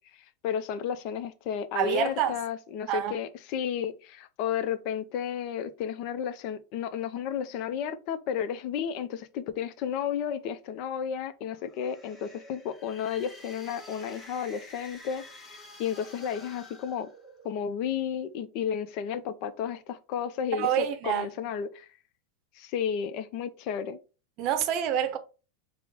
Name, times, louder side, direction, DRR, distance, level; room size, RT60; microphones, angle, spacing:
voice 1, 0.1-17.1 17.4-21.9 22.5-24.0, left 8 dB, 50° left, 0.4 m, -32 dB
voice 2, 1.7-2.4 2.9-3.1 20.5-21.3 24.4-25.2, right 10 dB, 50° right, 0.6 m, -27 dB
sound 1, 11.6-17.7, left 1 dB, 15° left, 1.1 m, -49 dB
4.5 x 2.0 x 3.5 m
hypercardioid pair, 90°, 0 cm